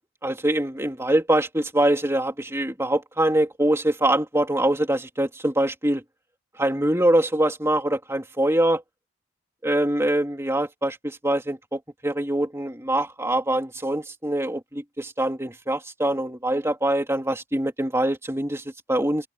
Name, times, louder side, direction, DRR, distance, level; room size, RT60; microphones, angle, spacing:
voice 1, 0.2-6.0 6.6-8.8 9.6-19.3, right 1 dB, 10° right, 3.1 m, -24 dB
open air
head